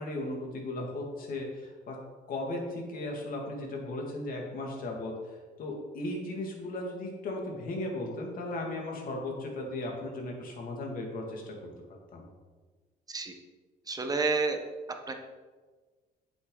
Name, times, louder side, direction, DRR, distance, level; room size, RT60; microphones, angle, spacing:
voice 1, 0.0-2.0 2.3-5.1 5.6-11.6 12.1-12.3, left 2 dB, 55° left, 0 dB, 2.7 m, -36 dB
voice 2, 13.9-14.6 15.1-15.2, right 4 dB, 20° right, 5 dB, 1.2 m, -29 dB
9.3 x 8.0 x 4.1 m, 1.4 s
cardioid pair, 110°, 17 cm